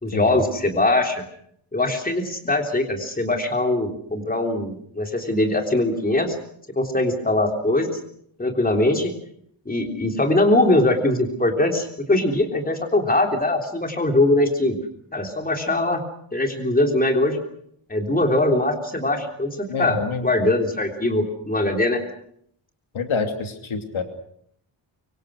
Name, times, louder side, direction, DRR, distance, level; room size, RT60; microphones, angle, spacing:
voice 1, 0.0-1.2 1.7-6.4 6.8-8.0 8.4-9.1 9.7-14.8 15.1-16.0 16.3-17.4 17.9-19.5 19.8-22.0, left 2 dB, 15° left, 3 dB, 3.5 m, -21 dB
voice 2, 19.7-20.3 22.9-24.0, left 4 dB, 70° left, 6 dB, 2.9 m, -27 dB
25.0 x 24.5 x 6.4 m, 0.69 s
wide cardioid pair, 150°, 50 cm